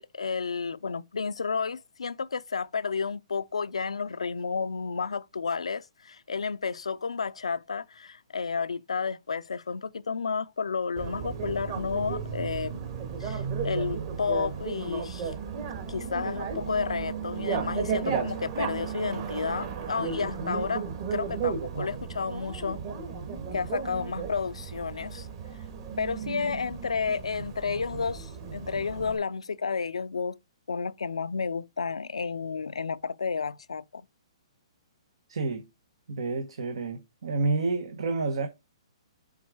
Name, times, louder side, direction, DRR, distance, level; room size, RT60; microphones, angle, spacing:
voice 1, 0.0-12.8 13.2-15.3 15.9-22.8 23.5-25.3 26.0-30.4 30.7-34.1, left 5 dB, 90° left, 0.4 m, -31 dB
Bicycle, 11.0-29.2, right 6 dB, 45° right, 2.1 m, -34 dB
voice 2, 35.3-35.7 36.1-38.5, right 3 dB, 70° right, 1.0 m, -29 dB
7.2 x 3.8 x 4.7 m
hypercardioid pair, 135°, 3 cm